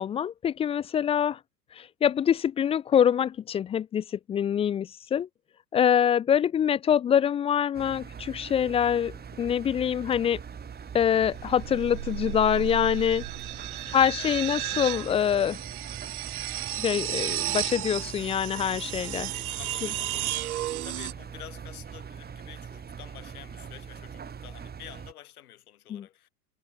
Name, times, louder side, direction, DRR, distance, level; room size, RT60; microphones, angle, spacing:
voice 1, 0.0-1.4 1.7-5.3 5.7-10.4 10.9-13.2 13.9-15.6 16.7-19.3 25.9-26.1, left 9 dB, 15° left, 0.4 m, -25 dB
Engine, 7.7-25.1, right 7 dB, 20° right, 3.0 m, -42 dB
sound 1, 8.5-8.9 11.1-21.1, right 14 dB, 65° right, 1.0 m, -34 dB
voice 2, 13.7-14.4 19.6-26.3, left 12 dB, 65° left, 7.2 m, -49 dB
figure-of-eight pair, 85°, 47 cm